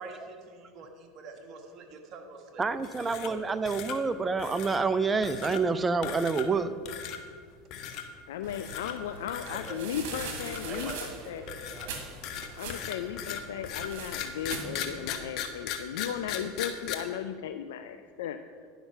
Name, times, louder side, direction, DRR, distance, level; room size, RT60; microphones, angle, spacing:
voice 1, 0.0-2.6 3.0-3.6 9.4-10.2 10.6-12.2, right 3 dB, 45° right, 3 dB, 1.4 m, -45 dB
voice 2, 2.6-6.7, right 4 dB, 20° right, 12 dB, 0.5 m, -28 dB
sound 1, 2.8-3.4 3.7-4.0 4.4-4.8 5.2-5.6 6.0-6.6 6.9-7.2 7.7-8.0 8.5-8.9 9.3-9.7 10.1-11.1 11.5-16.9, left 9 dB, 55° left, 0.9 m, -37 dB
voice 3, 8.3-11.4 12.6-18.4, left 9 dB, 80° left, 8 dB, 0.3 m, -36 dB
sound 2, 8.4-15.3, right 4 dB, 65° right, 1.7 m, -43 dB
10.0 x 5.7 x 5.5 m, 2.1 s
hypercardioid pair, 90°, 0 cm